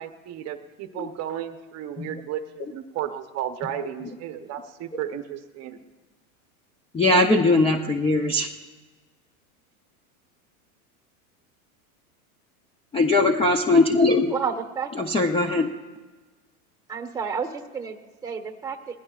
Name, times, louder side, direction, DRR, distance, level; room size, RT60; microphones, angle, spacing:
voice 1, 0.0-5.8, right 10 dB, 35° right, 8 dB, 0.8 m, -34 dB
voice 2, 6.9-8.5 12.9-14.3 15.0-15.7, left 2 dB, 15° left, 4 dB, 0.6 m, -20 dB
voice 3, 14.3-14.9 16.9-19.0, right 6 dB, 10° right, 6 dB, 1.2 m, -31 dB
20.5 x 15.5 x 2.4 m, 1.3 s
supercardioid pair, 130°, 44 cm